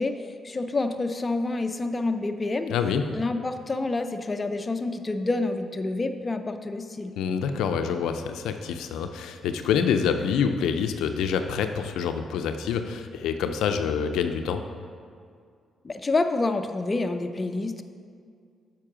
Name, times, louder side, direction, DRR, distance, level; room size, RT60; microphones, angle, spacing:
voice 1, 0.0-2.7 3.1-7.1 15.8-17.8, left 2 dB, 30° left, 7 dB, 0.5 m, -28 dB
voice 2, 2.7-3.0 7.2-14.6, left 7 dB, 90° left, 7 dB, 0.4 m, -26 dB
7.4 x 5.3 x 4.9 m, 2.2 s
cardioid pair, 80°, 0 cm